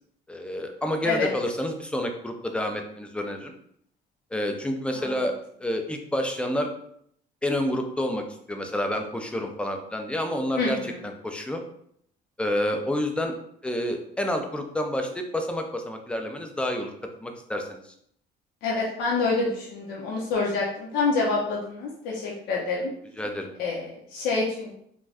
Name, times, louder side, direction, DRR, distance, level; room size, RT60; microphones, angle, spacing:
voice 1, 0.3-3.5 4.3-5.3 5.6-6.7 7.4-11.6 12.4-13.3 13.6-16.9 17.2-17.8 23.2-23.5, left 1 dB, 5° left, 4 dB, 0.4 m, -29 dB
voice 2, 10.6-11.0 18.6-22.9 23.6-24.7, left 3 dB, 75° left, -3 dB, 0.6 m, -27 dB
2.5 x 2.2 x 3.3 m, 0.69 s
cardioid pair, 110°, 17 cm